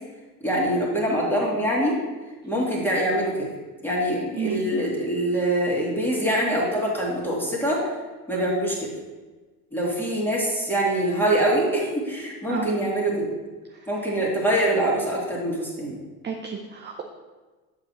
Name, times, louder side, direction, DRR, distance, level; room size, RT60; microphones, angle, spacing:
voice 1, 0.4-2.0 2.4-3.5 3.8-7.9 8.3-8.9 9.7-13.3 13.9-16.0, right 1 dB, 5° left, -4 dB, 2.5 m, -24 dB
voice 2, 16.2-17.0, right 7 dB, 20° right, 1 dB, 0.7 m, -31 dB
7.9 x 6.9 x 3.0 m, 1.3 s
hypercardioid pair, 85°, 49 cm